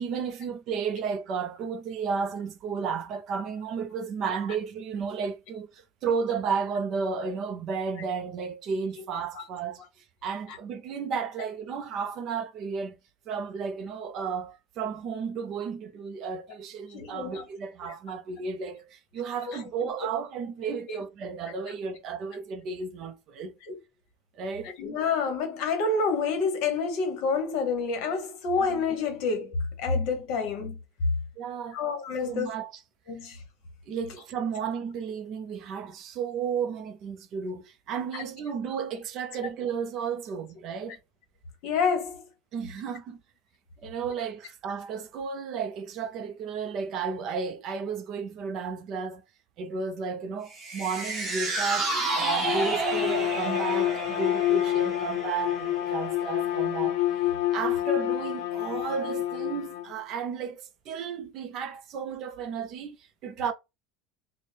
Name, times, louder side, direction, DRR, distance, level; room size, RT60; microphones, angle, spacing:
voice 1, 0.0-13.0 13.3-23.5 24.3-24.7 28.6-28.8 31.4-31.8 32.2-32.8 33.9-41.0 42.5-43.2 43.8-49.2 49.6-57.0 57.5-63.5, right 6 dB, 35° right, 0.4 m, -33 dB
voice 2, 16.9-17.4 17.8-17.9 19.5-19.6 20.9-21.0 23.7-23.8 24.8-30.8 31.7-32.5 33.1-33.4 38.1-38.2 41.6-42.2, left 4 dB, 50° left, 1.0 m, -28 dB
sound 1, 50.5-57.0 57.3-57.4, right 2 dB, 15° right, 0.9 m, -31 dB
Bowed string instrument, 52.4-59.9, left 14 dB, 65° left, 0.4 m, -28 dB
4.2 x 2.0 x 3.2 m
cardioid pair, 180°, 0 cm